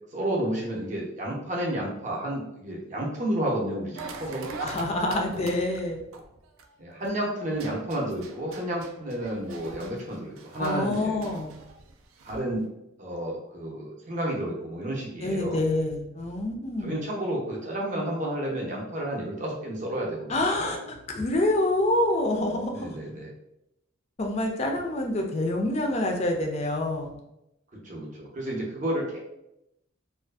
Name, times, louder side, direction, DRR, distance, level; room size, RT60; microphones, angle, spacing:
voice 1, 0.1-4.5 5.3-5.5 6.8-11.2 12.2-12.7 13.0-15.6 16.8-20.3 20.6-20.8 22.7-23.3 27.8-29.2, right 1 dB, 35° right, -2 dB, 0.6 m, -31 dB
sound 1, 4.0-7.1 7.5-12.5, right 4 dB, 85° right, 0.3 m, -43 dB
voice 2, 4.6-6.0 10.6-11.6 15.2-17.0 20.3-23.0 24.2-27.2, left 1 dB, 30° left, 2 dB, 0.3 m, -27 dB
2.5 x 2.3 x 2.3 m, 0.84 s
head